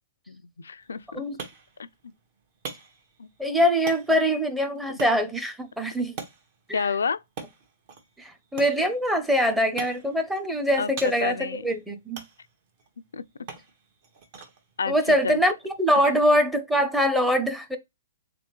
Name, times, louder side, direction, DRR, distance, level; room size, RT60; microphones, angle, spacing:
voice 1, 0.3-1.2 3.2-3.3 4.9-5.0 6.7-7.2 10.8-10.9 11.2-11.6 13.1-13.2 14.8-14.9 15.2-15.4, left 5 dB, 90° left, 0.3 m, -29 dB
sound 1, 0.8-16.4, right 5 dB, 50° right, 1.3 m, -45 dB
voice 2, 3.4-6.2 6.7-6.9 8.2-12.2 14.9-17.8, equal, 5° right, 0.7 m, -23 dB
3.6 x 3.4 x 3.1 m
hypercardioid pair, 135°, 0 cm